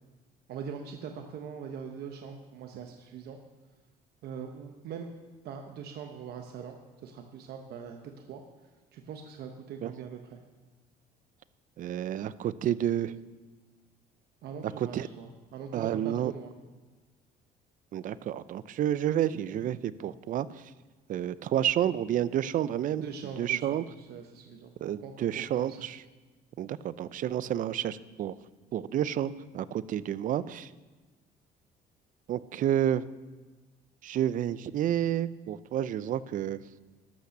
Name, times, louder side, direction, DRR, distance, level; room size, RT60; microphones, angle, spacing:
voice 1, 0.5-3.4 4.2-5.1 5.4-6.8 7.0-8.4 8.9-10.4 14.4-16.5 23.0-25.9, right 7 dB, 70° right, 4 dB, 0.9 m, -42 dB
voice 2, 11.8-13.1 14.6-15.1 15.7-16.3 17.9-20.6 21.1-23.0 23.4-23.8 24.8-26.0 26.6-28.3 28.7-30.7 32.3-33.0 34.0-36.6, right 11 dB, 50° right, 17 dB, 0.4 m, -30 dB
12.0 x 5.7 x 6.6 m, 1.3 s
cardioid pair, 110°, 17 cm